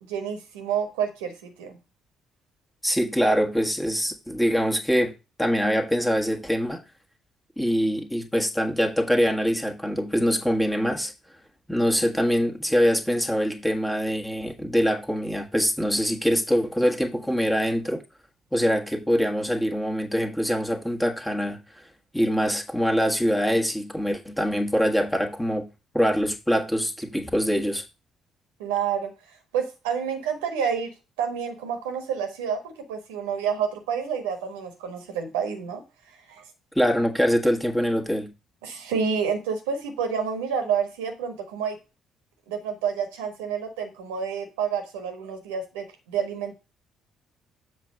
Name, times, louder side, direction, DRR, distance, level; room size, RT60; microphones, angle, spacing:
voice 1, 0.0-1.8 28.6-29.1 29.5-30.9 31.2-35.8 36.3-36.4 38.6-41.8 42.5-46.5, right 7 dB, 75° right, 1.3 m, -29 dB
voice 2, 2.8-5.1 5.4-6.8 7.6-11.1 11.7-18.0 18.5-21.6 22.1-25.7 25.9-27.8 36.7-38.3, equal, 5° left, 1.5 m, -24 dB
7.4 x 3.3 x 6.3 m
figure-of-eight pair, 45°, 0 cm